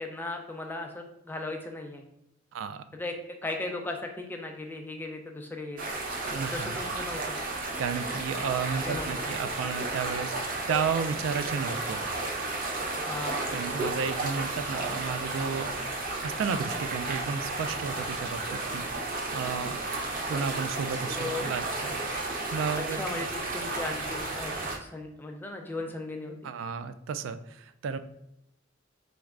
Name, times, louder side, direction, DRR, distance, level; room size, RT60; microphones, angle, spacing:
voice 1, 0.0-2.0 2.9-3.1 3.4-5.8 6.5-7.4 8.8-9.2 13.1-13.7 21.1-21.5 22.9-26.5, left 2 dB, 10° left, 3 dB, 0.3 m, -37 dB
voice 2, 2.5-2.8 6.3-6.8 7.8-10.3 10.7-12.0 13.5-15.7 16.2-19.8 20.3-22.0 22.3-23.0 26.4-28.0, right 6 dB, 90° right, 11 dB, 0.3 m, -33 dB
sound 1, 5.8-24.8, right 2 dB, 45° right, 0.6 m, -33 dB
4.0 x 3.2 x 2.4 m, 0.83 s
head